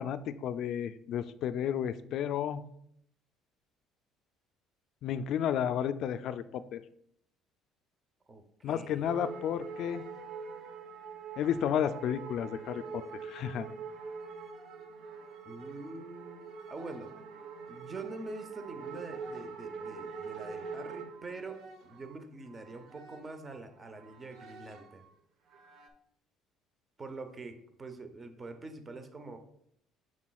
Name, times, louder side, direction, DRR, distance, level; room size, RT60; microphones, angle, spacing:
voice 1, 0.0-2.6 5.0-6.8 8.6-10.0 11.4-13.7, left 9 dB, 55° left, 13 dB, 0.3 m, -32 dB
voice 2, 8.3-9.1 15.5-16.4 16.7-17.1 17.7-25.0 27.0-29.4, right 3 dB, 20° right, 7 dB, 0.7 m, -45 dB
sound 1, 9.0-23.6 23.9-25.1 25.5-25.9, right 5 dB, 60° right, 0.8 m, -44 dB
7.2 x 6.2 x 2.3 m, 0.71 s
cardioid pair, 140°, 0 cm